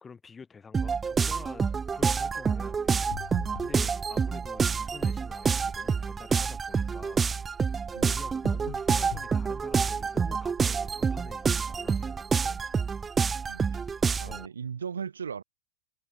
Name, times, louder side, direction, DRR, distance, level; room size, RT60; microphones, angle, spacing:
voice 1, 0.0-3.0 3.6-7.2 8.0-12.6 14.3-14.5, left 5 dB, 15° left, 1.5 m, -48 dB
sound 1, 0.7-14.5, right 5 dB, 15° right, 0.3 m, -28 dB
sound 2, 3.1-4.0 8.4-9.3, left 29 dB, 45° left, 1.6 m, -41 dB
voice 2, 14.2-15.4, right 7 dB, 70° right, 3.1 m, -37 dB
figure-of-eight pair, 90°, 0 cm